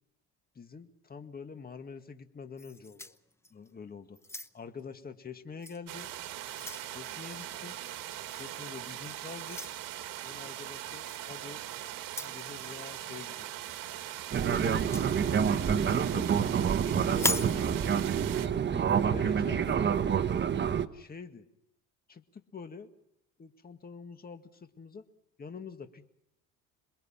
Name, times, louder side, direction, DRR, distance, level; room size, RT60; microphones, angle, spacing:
voice 1, 0.6-3.2 3.5-4.2 4.5-6.1 6.9-7.8 8.3-9.6 10.2-11.6 12.2-13.5 14.4-15.6 15.9-16.5 16.8-18.0 18.7-19.8 20.9-21.4 22.1-22.9 23.4-25.0 25.4-26.1, left 5 dB, 25° left, 8 dB, 2.0 m, -46 dB
sound 1, 2.6-3.7 4.2-4.8 5.6-5.8 6.2-6.9 8.3-8.5 9.4-9.8 11.1-11.3 12.0-12.4 14.7-15.1 17.1-17.6, left 2 dB, 10° left, 0.8 m, -36 dB
sound 2, 5.9-18.5, right 13 dB, 70° right, 2.2 m, -41 dB
Fixed-wing aircraft airplane, 14.3-20.9, right 7 dB, 30° right, 1.1 m, -27 dB
27.5 x 22.0 x 5.8 m, 0.78 s
cardioid pair, 115°, 34 cm